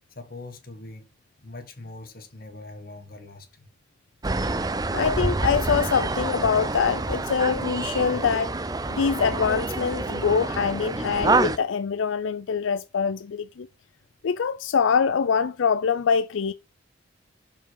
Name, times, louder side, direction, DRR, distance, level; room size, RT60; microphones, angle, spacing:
voice 1, 0.1-1.1 1.4-3.7, left 2 dB, 50° left, 1.8 m, -42 dB
sound 1, 4.2-11.6, right 2 dB, 20° right, 0.5 m, -27 dB
voice 2, 4.9-8.5 8.9-13.7 14.2-16.5, left 6 dB, 85° left, 0.4 m, -24 dB
6.9 x 5.6 x 4.7 m
head